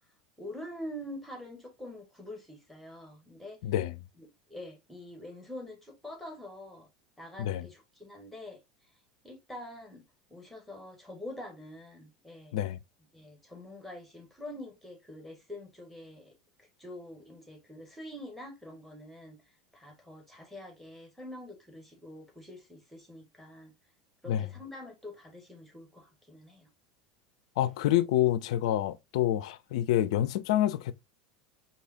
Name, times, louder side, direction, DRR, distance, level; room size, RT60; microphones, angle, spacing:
voice 1, 0.4-3.6 4.2-6.9 7.2-8.6 9.2-10.0 10.3-12.5 13.1-16.3 16.6-23.7 24.2-26.7 27.6-27.7, left 1 dB, 5° left, 1.8 m, -45 dB
voice 2, 3.6-3.9 7.4-7.6 12.5-12.8 24.3-24.4 27.6-30.9, left 12 dB, 65° left, 0.4 m, -27 dB
4.7 x 2.9 x 2.7 m
hypercardioid pair, 80°, 3 cm